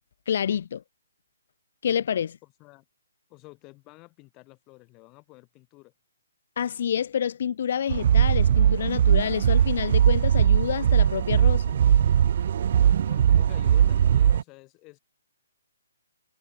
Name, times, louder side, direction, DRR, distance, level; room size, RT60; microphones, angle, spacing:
voice 1, 0.3-0.8 1.8-2.4 6.6-11.7, left 8 dB, 50° left, 1.2 m, -28 dB
voice 2, 2.4-2.8 3.3-5.9 13.0-15.0, left 23 dB, 20° left, 8.0 m, -50 dB
sound 1, 7.9-14.4, right 9 dB, 45° right, 0.6 m, -20 dB
hypercardioid pair, 165°, 0 cm